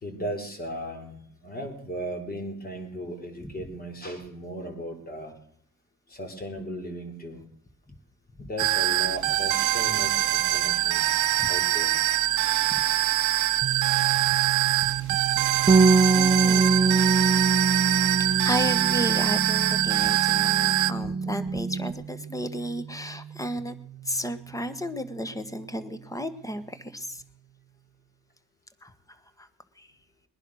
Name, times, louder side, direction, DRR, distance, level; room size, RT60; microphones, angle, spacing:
voice 1, 0.0-5.3 6.1-7.4 8.4-11.1 11.5-12.0 14.4-15.3 15.6-16.1 20.9-21.0, equal, 30° left, 5 dB, 3.8 m, -37 dB
sound 1, 8.6-20.9, right 15 dB, 80° right, 0.7 m, -24 dB
sound 2, 13.6-27.2, right 12 dB, 45° right, 1.0 m, -37 dB
Bass guitar, 15.7-21.9, right 3 dB, 15° right, 0.7 m, -23 dB
voice 2, 16.1-16.9 18.2-23.7 24.0-27.2 28.8-29.5 29.8-29.9, equal, 10° left, 12 dB, 1.4 m, -33 dB
20.5 x 10.5 x 6.4 m, 0.66 s
cardioid pair, 90°, 30 cm